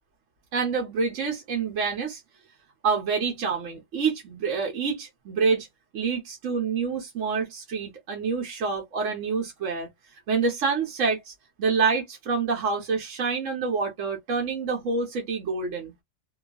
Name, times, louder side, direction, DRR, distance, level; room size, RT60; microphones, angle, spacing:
voice 1, 0.5-2.2 2.8-5.7 5.9-9.9 10.3-11.3 11.6-16.0, right 5 dB, 70° right, 1.2 m, -27 dB
2.9 x 2.3 x 2.2 m
omnidirectional pair, 1.4 m